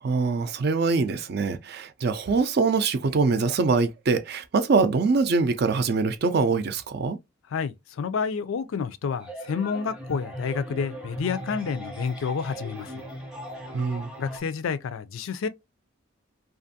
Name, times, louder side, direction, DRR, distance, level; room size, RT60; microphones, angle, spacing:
voice 1, 0.0-7.2 13.7-14.1, right 4 dB, 50° right, 0.4 m, -24 dB
voice 2, 7.5-13.0 14.2-15.5, left 6 dB, 75° left, 0.4 m, -29 dB
sound 1, 9.2-14.4, equal, 5° right, 0.6 m, -38 dB
2.5 x 2.5 x 2.6 m
head